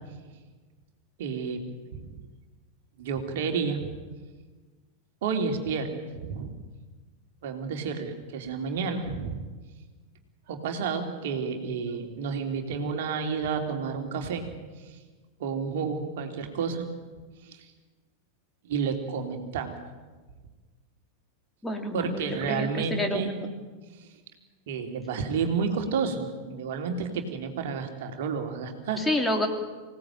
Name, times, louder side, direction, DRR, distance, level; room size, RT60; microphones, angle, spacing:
voice 1, 1.2-1.6 1.9-2.2 3.0-4.0 5.2-6.5 7.4-9.4 10.5-14.5 14.8-15.0 15.4-16.8 17.4-17.7 18.6-19.8 21.9-23.3 23.9-24.1 24.7-29.0, right 5 dB, 55° right, 5 dB, 3.2 m, -31 dB
voice 2, 21.6-23.3 29.0-29.5, left 1 dB, 5° left, 3 dB, 3.1 m, -28 dB
26.5 x 17.5 x 9.1 m, 1.4 s
figure-of-eight pair, 90°, 0 cm